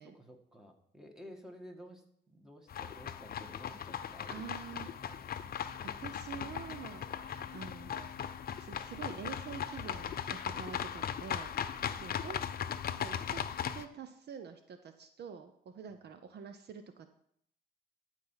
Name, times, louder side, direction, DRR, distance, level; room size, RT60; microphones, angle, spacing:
voice 1, 0.0-5.9 7.3-7.6 11.7-12.1 15.9-16.0, equal, 5° right, 3 dB, 1.7 m, -54 dB
sound 1, 2.7-13.9, left 8 dB, 50° left, 0.6 m, -38 dB
voice 2, 4.3-4.9 6.0-8.1 8.6-12.4 12.9-13.4 13.7-17.1, right 7 dB, 55° right, 9 dB, 0.7 m, -47 dB
13.0 x 4.6 x 5.7 m, 0.70 s
cardioid pair, 90°, 20 cm